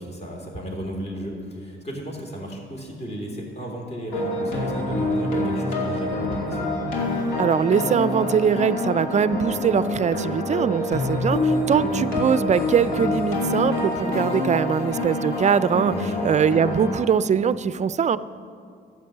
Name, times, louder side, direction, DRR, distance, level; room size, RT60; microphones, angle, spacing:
voice 1, 0.0-6.7 11.1-11.3 15.9-16.3, equal, 35° left, 1 dB, 3.2 m, -34 dB
sound 1, 4.1-16.9, left 1 dB, 85° left, 2.5 m, -26 dB
voice 2, 7.4-15.9 16.2-18.2, right 7 dB, 35° right, 16 dB, 0.4 m, -22 dB
12.5 x 8.0 x 7.3 m, 2.3 s
cardioid pair, 90°, 20 cm